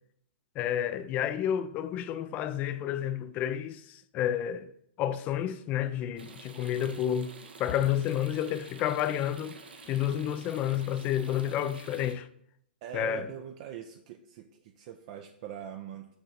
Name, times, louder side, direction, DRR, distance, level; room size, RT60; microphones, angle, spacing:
voice 1, 0.6-4.7 5.0-7.3 7.6-9.5 9.9-12.3 12.9-13.3, left 10 dB, 30° left, 0.4 m, -30 dB
sound 1, 6.2-12.1, right 4 dB, 70° right, 1.0 m, -49 dB
voice 2, 12.8-16.2, right 9 dB, 40° right, 0.5 m, -42 dB
6.7 x 4.6 x 4.2 m
figure-of-eight pair, 115°, 6 cm